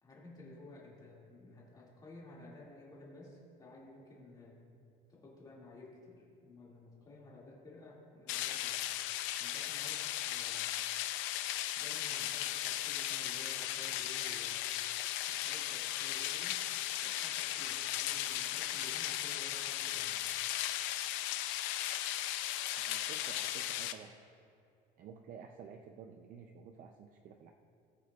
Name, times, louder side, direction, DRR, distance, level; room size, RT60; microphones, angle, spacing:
voice 1, 0.0-4.6 5.1-8.8 9.4-10.7 11.7-14.7 15.3-16.6 17.0-20.2, left 2 dB, 20° left, -5 dB, 2.3 m, -54 dB
sound 1, 8.3-23.9, left 13 dB, 90° left, 0.6 m, -36 dB
voice 2, 22.8-24.2 25.0-27.5, right 7 dB, 45° right, 4 dB, 0.5 m, -51 dB
18.5 x 8.2 x 2.4 m, 2.5 s
cardioid pair, 165°, 19 cm